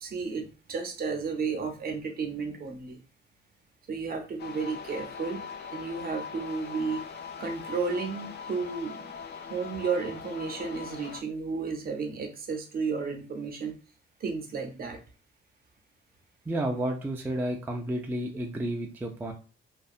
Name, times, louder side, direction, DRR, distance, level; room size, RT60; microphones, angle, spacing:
voice 1, 0.0-3.0 3.9-5.4 5.7-7.0 7.4-9.2 9.5-13.7 14.2-15.0, right 5 dB, 50° right, 4 dB, 0.7 m, -33 dB
sound 1, 4.4-11.2, left 6 dB, 55° left, 0.5 m, -41 dB
voice 2, 16.5-19.3, right 1 dB, 10° right, 2 dB, 0.3 m, -31 dB
2.6 x 2.2 x 2.4 m, 0.35 s
cardioid pair, 90°, 20 cm